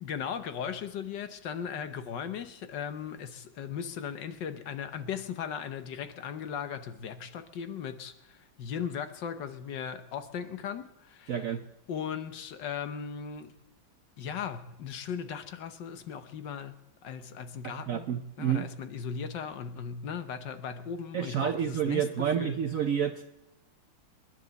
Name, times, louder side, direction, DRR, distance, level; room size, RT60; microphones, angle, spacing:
voice 1, 0.0-11.5 11.9-13.5 14.2-16.7 17.0-18.1 18.4-22.6, left 7 dB, 70° left, 1.6 m, -37 dB
voice 2, 11.3-11.6 17.9-18.6 21.1-23.2, right 9 dB, 65° right, 0.8 m, -29 dB
27.5 x 10.5 x 4.0 m
omnidirectional pair, 2.1 m